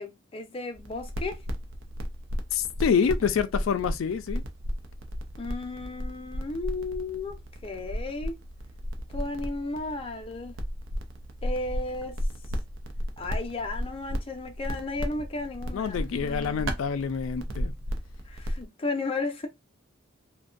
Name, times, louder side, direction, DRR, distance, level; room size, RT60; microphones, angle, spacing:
voice 1, 0.0-1.4 5.4-8.4 9.1-10.5 11.4-12.2 13.2-16.7 18.3-19.5, left 3 dB, 30° left, 0.5 m, -34 dB
sound 1, 0.7-18.6, equal, 80° right, 0.6 m, -34 dB
voice 2, 2.5-4.4 15.7-17.7, left 6 dB, 85° left, 0.3 m, -27 dB
2.6 x 2.2 x 2.4 m
head